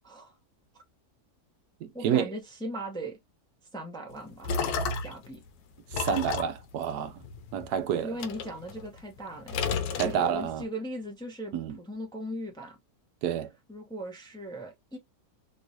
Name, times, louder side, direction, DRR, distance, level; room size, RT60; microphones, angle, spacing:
voice 1, 0.0-0.3 1.9-3.2 3.7-4.5 5.0-5.4 8.0-12.8 13.7-15.0, right 1 dB, 5° left, 0.6 m, -39 dB
voice 2, 1.8-2.3 5.9-7.2 7.5-8.1 9.9-10.6 11.5-11.8 13.2-13.5, right 9 dB, 80° right, 1.2 m, -29 dB
sound 1, 4.1-5.3 5.9-7.7 8.2-9.2 9.5-10.6, left 5 dB, 80° left, 1.2 m, -32 dB
3.2 x 3.0 x 2.7 m
omnidirectional pair, 1.7 m